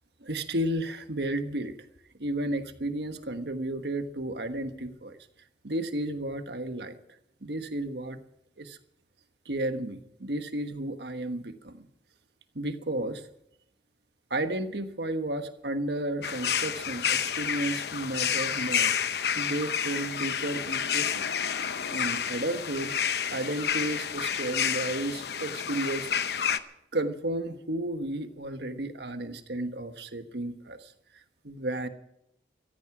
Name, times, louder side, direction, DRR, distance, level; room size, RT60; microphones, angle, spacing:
voice 1, 0.2-1.8 2.2-5.2 5.6-7.0 7.4-8.2 8.6-8.8 9.4-11.9 12.5-13.2 14.3-18.9 19.4-21.3 21.9-22.9 23.3-26.1 26.9-30.9 31.4-31.9, right 1 dB, 75° right, 8 dB, 1.3 m, -33 dB
sound 1, 16.2-26.6, left 8 dB, 70° left, 0.8 m, -30 dB
15.5 x 14.5 x 6.1 m, 0.78 s
head